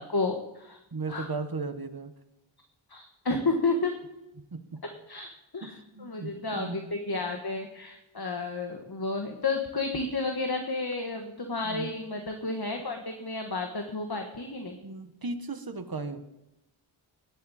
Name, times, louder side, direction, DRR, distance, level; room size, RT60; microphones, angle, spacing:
voice 1, 0.0-0.8 1.1-1.3 2.9-3.9 5.1-14.8, left 3 dB, 50° left, 3 dB, 1.5 m, -31 dB
voice 2, 0.9-2.1 4.5-4.8 5.6-6.9 11.6-11.9 14.8-16.3, right 3 dB, 45° right, 8 dB, 1.2 m, -36 dB
17.5 x 11.5 x 4.2 m, 0.90 s
wide cardioid pair, 55°, 48 cm